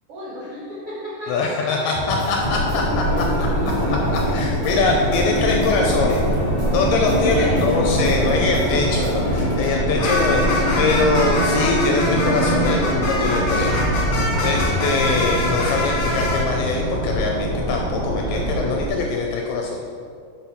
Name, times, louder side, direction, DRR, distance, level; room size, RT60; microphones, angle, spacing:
voice 1, 0.1-2.1 3.1-3.7 7.0-7.8 8.2-8.4, equal, 85° right, -8 dB, 1.3 m, -34 dB
voice 2, 1.3-3.5 3.9-6.2 6.7-14.1 14.4-20.0, left 3 dB, 80° left, 0 dB, 2.3 m, -23 dB
sound 1, 1.9-9.7, equal, 55° right, 0.5 m, -28 dB
sound 2, 2.4-18.9, right 1 dB, 40° right, 2.2 m, -23 dB
sound 3, 2.6-5.5 5.9-16.4, left 2 dB, 60° left, 2.0 m, -28 dB
6.0 x 5.7 x 5.7 m, 2.2 s
omnidirectional pair, 5.0 m